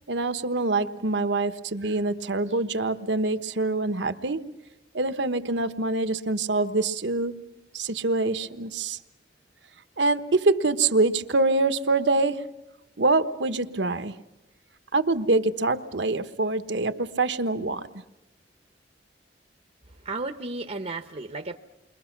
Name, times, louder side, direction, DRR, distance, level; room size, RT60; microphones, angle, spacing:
voice 1, 0.1-4.5 4.9-7.4 7.7-9.0 10.0-12.5 13.0-14.1 14.9-17.9, right 2 dB, 75° right, 1.2 m, -25 dB
voice 2, 20.0-21.6, right 3 dB, 40° right, 0.9 m, -33 dB
29.5 x 23.5 x 6.0 m
head